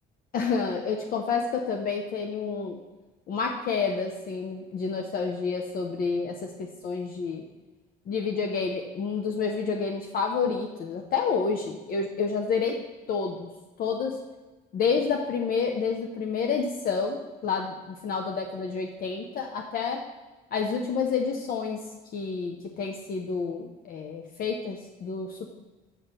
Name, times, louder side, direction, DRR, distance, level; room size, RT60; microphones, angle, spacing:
voice 1, 0.3-2.8 3.3-7.4 8.1-12.8 13.1-13.5 13.8-14.2 14.7-20.0 20.5-21.8 22.1-25.5, left 5 dB, 60° left, 2 dB, 0.9 m, -29 dB
6.5 x 5.7 x 6.7 m, 1.2 s
cardioid pair, 110°, 17 cm